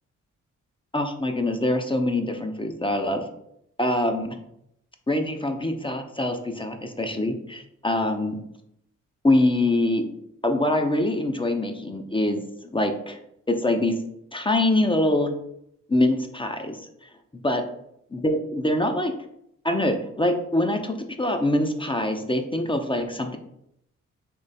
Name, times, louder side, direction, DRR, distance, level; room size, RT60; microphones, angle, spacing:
voice 1, 0.9-3.3 3.8-4.4 5.1-8.4 9.2-10.1 10.4-13.2 13.5-14.0 14.3-15.3 15.9-17.1 17.4-17.6 18.1-19.1 19.6-23.4, left 1 dB, 15° left, 5 dB, 0.7 m, -24 dB
3.8 x 3.0 x 4.2 m, 0.77 s
cardioid pair, 55°, 32 cm